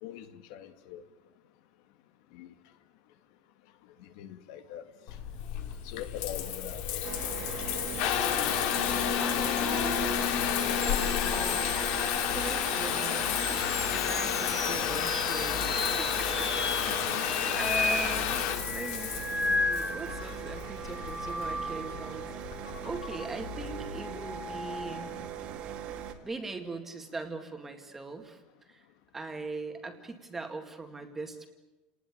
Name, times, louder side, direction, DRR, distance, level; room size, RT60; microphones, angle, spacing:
voice 1, 0.0-1.0 2.3-2.5 4.0-4.8 5.8-6.8 11.5-11.6 16.9-17.3 19.4-20.0 22.3-22.8, left 11 dB, 85° left, 8 dB, 2.1 m, -44 dB
Water tap faucet / Bathtub (filling or washing) / Trickle dribble, 5.1-24.0, left 10 dB, 65° left, 2.7 m, -31 dB
sound 1, 7.0-26.1, right 8 dB, 45° right, 2.2 m, -41 dB
voice 2, 7.6-8.3 9.2-11.7 12.3-22.3 22.8-25.2 26.2-28.9 29.1-31.5, right 3 dB, 10° right, 5 dB, 2.1 m, -41 dB
sound 2, 10.8-20.4 20.8-22.2 24.0-25.2, left 2 dB, 5° left, 2.2 m, -35 dB
29.5 x 19.5 x 8.7 m, 1.1 s
cardioid pair, 180°, 3 cm